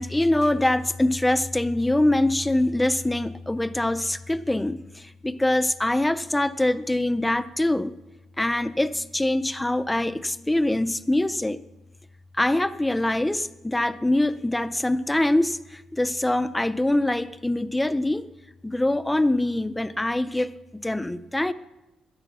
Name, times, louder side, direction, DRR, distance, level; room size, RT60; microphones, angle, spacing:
voice 1, 0.0-7.9 8.4-11.6 12.3-18.3 18.6-21.5, left 1 dB, 5° left, 14 dB, 0.4 m, -24 dB
13.0 x 10.0 x 7.1 m, 1.0 s
cardioid pair, 155°, 0 cm